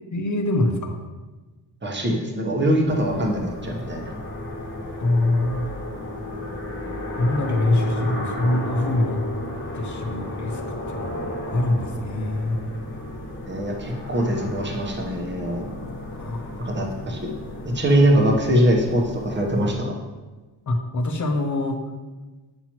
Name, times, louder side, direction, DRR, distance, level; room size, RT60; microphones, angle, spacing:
voice 1, 0.1-1.0 2.1-2.2 2.5-2.6 5.0-5.7 7.2-9.3 9.7-10.6 10.9-12.6 16.1-16.7 20.7-21.8, left 2 dB, 45° left, 4 dB, 0.7 m, -24 dB
voice 2, 1.8-4.0 13.1-13.2 13.5-15.7 16.6-17.2 17.7-19.9, equal, 25° right, 0 dB, 1.0 m, -22 dB
sound 1, 2.8-19.8, left 1 dB, 30° left, 1.2 m, -34 dB
8.7 x 5.7 x 3.0 m, 1.2 s
wide cardioid pair, 160°, 43 cm